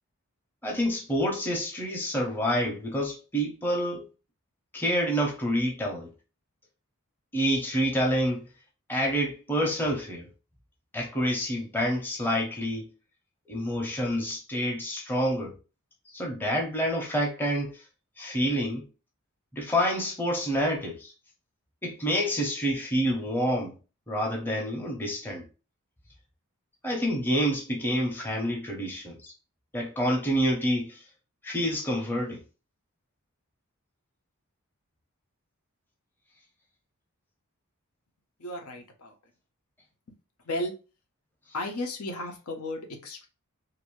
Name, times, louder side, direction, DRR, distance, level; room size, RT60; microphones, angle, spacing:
voice 1, 0.6-4.1 4.7-6.1 7.3-8.4 8.9-10.3 10.9-12.9 13.5-15.5 16.1-17.7 18.2-18.9 19.5-21.1 21.8-23.7 24.1-25.4 26.8-29.3 29.7-31.0 31.4-32.4, equal, 10° left, 0.6 m, -28 dB
voice 2, 38.4-39.1 40.5-40.7 41.5-43.3, left 1 dB, 80° left, 0.7 m, -34 dB
2.6 x 2.6 x 3.0 m
head